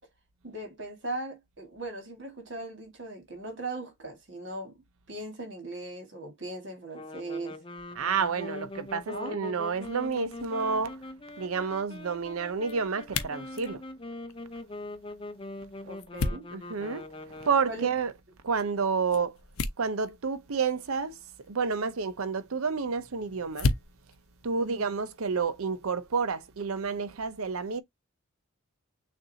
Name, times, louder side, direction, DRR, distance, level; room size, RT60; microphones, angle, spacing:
voice 1, 0.4-4.8 5.1-7.6 9.1-9.3 15.8-16.5 17.7-17.9 24.6-24.9, right 2 dB, 55° right, 2.0 m, -39 dB
sound 1, 6.9-17.9, left 2 dB, 25° left, 0.5 m, -42 dB
voice 2, 8.0-11.0 11.4-13.8 16.5-18.1 18.4-19.4 19.8-21.2 21.5-23.7 24.4-27.8, right 5 dB, 85° right, 0.7 m, -30 dB
sound 2, 10.6-25.5, left 3 dB, 80° left, 0.7 m, -39 dB
6.5 x 2.6 x 2.7 m
head